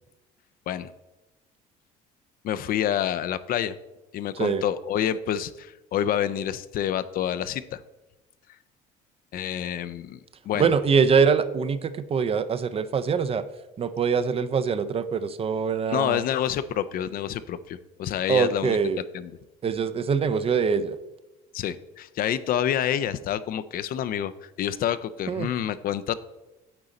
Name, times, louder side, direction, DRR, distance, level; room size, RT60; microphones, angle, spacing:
voice 1, 2.4-3.7 4.1-7.8 9.3-10.2 10.5-10.8 15.9-18.8 19.1-19.3 21.5-26.1, left 10 dB, 50° left, 14 dB, 0.4 m, -28 dB
voice 2, 10.5-13.4 13.8-16.2 18.3-19.0 19.6-21.0 25.3-25.5, right 6 dB, 30° right, 13 dB, 0.4 m, -23 dB
8.8 x 4.1 x 3.9 m, 1.0 s
cardioid pair, 100°, 19 cm